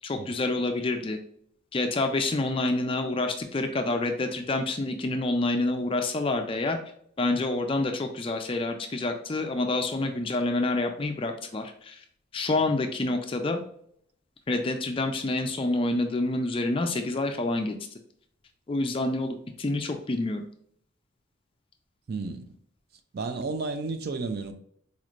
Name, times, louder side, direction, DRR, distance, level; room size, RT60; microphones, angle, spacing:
voice 1, 0.0-1.2 1.7-6.8 7.2-12.0 12.3-13.6 14.5-17.7 18.7-20.4, left 2 dB, 25° left, 0.3 m, -27 dB
voice 2, 22.1-22.5 23.1-24.5, right 3 dB, 45° right, 0.3 m, -32 dB
4.1 x 3.1 x 2.5 m
head